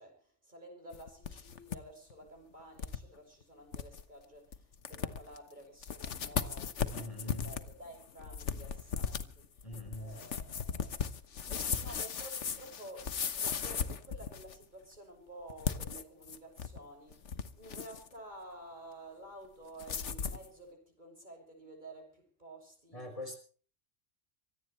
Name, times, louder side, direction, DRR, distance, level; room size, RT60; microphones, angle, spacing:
voice 1, 0.0-9.7 10.0-23.4, right 1 dB, 40° right, 6.2 m, -52 dB
sound 1, 0.9-1.8 2.1-2.2 2.8-3.0 3.4-3.5 3.7-4.0 4.5-4.6 4.9-5.4 5.8-14.6 15.5-16.8 17.1-18.1 19.8-20.5, left 7 dB, 85° left, 1.5 m, -37 dB
voice 2, 6.9-7.5 9.6-10.2 22.9-23.4, left 1 dB, 30° left, 5.3 m, -43 dB
25.0 x 17.5 x 3.2 m
omnidirectional pair, 1.2 m